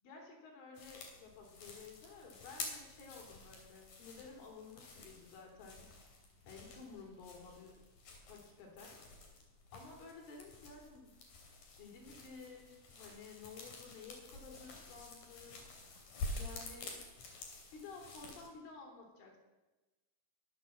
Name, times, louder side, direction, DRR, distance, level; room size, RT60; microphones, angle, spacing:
voice 1, 0.0-5.9 6.5-7.8 8.3-9.0 9.7-11.1 11.8-15.6 16.4-17.0 17.7-19.4, left 4 dB, 75° left, 1 dB, 5.8 m, -53 dB
sound 1, 0.7-18.5, left 3 dB, 50° left, 4.4 m, -49 dB
22.5 x 8.0 x 7.4 m, 1.1 s
omnidirectional pair, 5.6 m